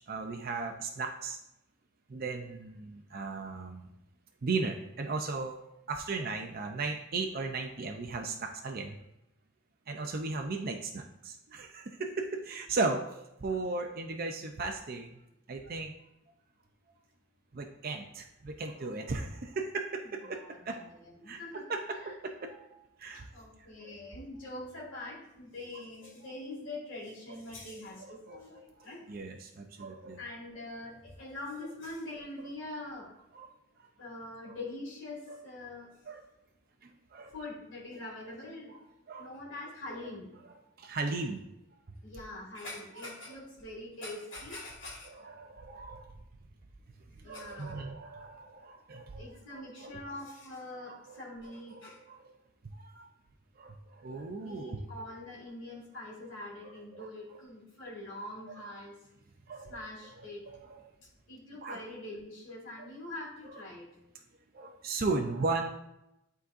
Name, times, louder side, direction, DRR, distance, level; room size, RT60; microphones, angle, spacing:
voice 1, 0.0-1.4 2.1-3.9 4.4-9.0 9.9-15.2 15.5-15.9 17.5-20.8 21.2-23.3 23.8-23.9 28.0-30.2 32.4-32.5 33.3-33.9 34.4-34.6 35.3-35.4 36.1-36.2 36.8-37.3 38.7-38.8 39.1-39.3 40.8-41.4 43.3-43.4 45.0-46.1 47.1-49.2 49.5-50.0 50.8-51.2 51.7-52.3 52.6-53.1 53.6-54.8 56.6-57.4 58.5-58.7 59.5-59.8 60.5-60.8 61.6-61.8 62.8-62.9 63.4-63.6 64.5-65.7, right 3 dB, 45° right, 3 dB, 0.5 m, -37 dB
voice 2, 20.3-21.6 23.1-29.0 30.2-33.1 34.0-35.9 37.3-38.8 39.2-40.3 42.0-45.1 47.2-47.9 49.2-52.0 54.4-58.9 59.7-60.4 61.3-63.9, left 2 dB, 65° left, -5 dB, 2.0 m, -44 dB
11.0 x 3.9 x 2.5 m, 0.86 s
head